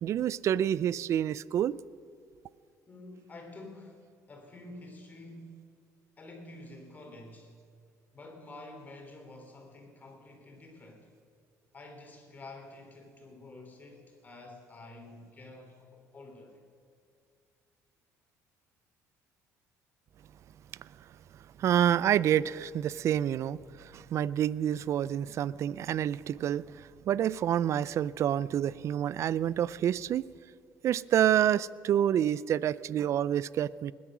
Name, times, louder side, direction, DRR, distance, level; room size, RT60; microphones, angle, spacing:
voice 1, 0.0-1.8 21.6-30.3 30.8-33.9, right 10 dB, 50° right, 0.4 m, -28 dB
voice 2, 2.9-5.7 6.2-7.5 8.1-11.1 11.7-16.5, left 2 dB, 30° left, 3.2 m, -49 dB
20.0 x 10.5 x 6.1 m
cardioid pair, 105°, 6 cm